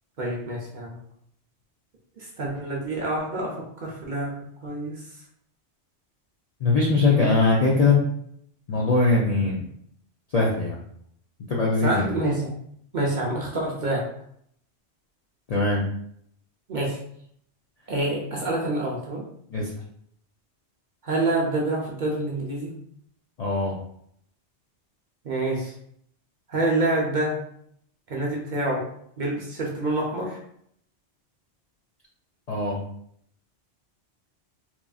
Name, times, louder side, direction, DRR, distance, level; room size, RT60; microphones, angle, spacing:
voice 1, 0.2-1.0 2.2-4.3 4.6-5.0 7.2-7.4 11.8-12.6 12.9-14.0 16.7-17.0 17.9-19.2 21.0-22.7 25.2-25.7 26.5-27.4 28.1-28.8 29.2-30.4, right 2 dB, 55° right, -2 dB, 0.6 m, -27 dB
voice 2, 6.6-8.0 8.7-9.7 10.3-10.8 11.5-12.1 15.5-15.8 19.5-19.7 23.4-23.8 32.5-32.8, left 3 dB, 55° left, -4 dB, 0.4 m, -21 dB
2.9 x 2.5 x 2.3 m, 0.69 s
omnidirectional pair, 1.2 m